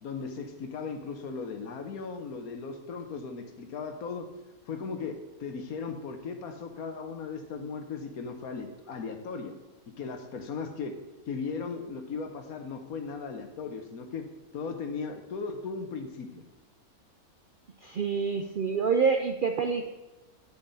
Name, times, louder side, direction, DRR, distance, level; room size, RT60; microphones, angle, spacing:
voice 1, 0.0-4.3 4.7-9.5 10.0-11.0 11.3-14.2 14.5-16.4, left 5 dB, 75° left, 6 dB, 1.5 m, -37 dB
voice 2, 17.8-19.9, right 5 dB, 60° right, 4 dB, 0.5 m, -27 dB
9.4 x 7.0 x 4.1 m, 1.1 s
omnidirectional pair, 1.5 m